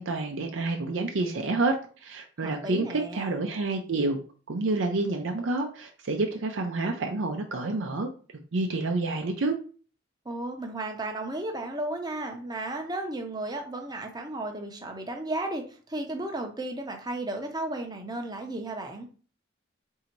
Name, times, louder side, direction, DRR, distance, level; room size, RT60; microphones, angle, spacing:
voice 1, 0.0-1.7 2.0-4.2 4.5-8.1 8.5-9.6, right 2 dB, 75° right, 3 dB, 0.5 m, -28 dB
voice 2, 2.4-3.3 10.2-19.1, right 2 dB, 20° right, 3 dB, 0.7 m, -34 dB
3.9 x 2.7 x 4.4 m, 0.39 s
head